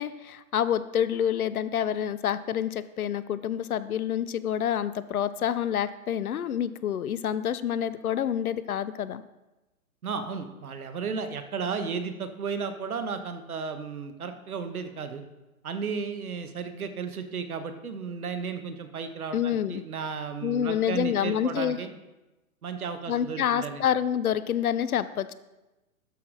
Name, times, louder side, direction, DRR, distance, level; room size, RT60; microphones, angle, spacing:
voice 1, 0.0-9.2 19.3-19.8 20.4-21.8 23.1-25.3, left 9 dB, 70° left, 15 dB, 0.7 m, -28 dB
voice 2, 10.0-15.2 15.6-21.9 22.6-23.8, right 5 dB, 75° right, 8 dB, 1.3 m, -34 dB
12.5 x 5.8 x 4.0 m, 1.0 s
hypercardioid pair, 130°, 44 cm